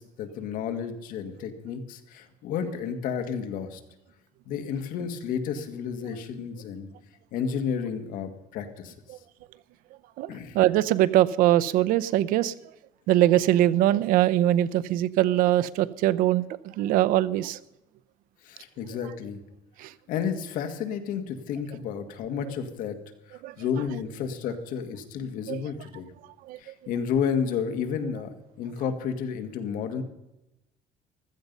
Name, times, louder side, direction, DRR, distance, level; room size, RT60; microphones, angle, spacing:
voice 1, 0.0-3.8 4.5-6.9 7.3-8.9 10.3-10.6 18.4-19.4 20.1-23.0 23.3-26.1 26.6-30.0, left 7 dB, 75° left, 7 dB, 1.9 m, -31 dB
voice 2, 10.5-12.5 13.1-16.4 16.8-17.6 19.8-19.9 23.4-23.5 25.5-25.6 26.5-26.6, right 13 dB, 90° right, 16 dB, 0.7 m, -22 dB
15.5 x 13.5 x 5.4 m, 0.93 s
cardioid pair, 150°, 14 cm